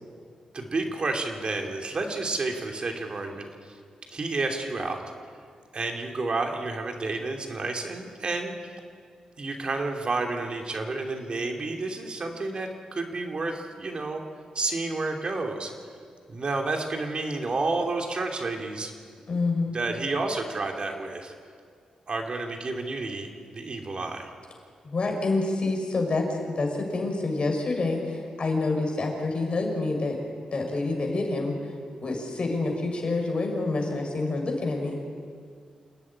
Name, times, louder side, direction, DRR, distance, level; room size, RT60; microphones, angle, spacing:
voice 1, 0.5-3.7 4.1-5.0 5.7-8.8 9.4-14.2 14.5-15.7 16.3-18.9 19.7-21.3 22.1-24.3, right 3 dB, 45° right, 2 dB, 3.0 m, -30 dB
voice 2, 19.3-19.7 24.8-30.2 30.5-31.5 32.0-35.0, left 3 dB, 50° left, 2 dB, 5.5 m, -27 dB
27.5 x 11.0 x 9.9 m, 2.1 s
cardioid pair, 75°, 2 cm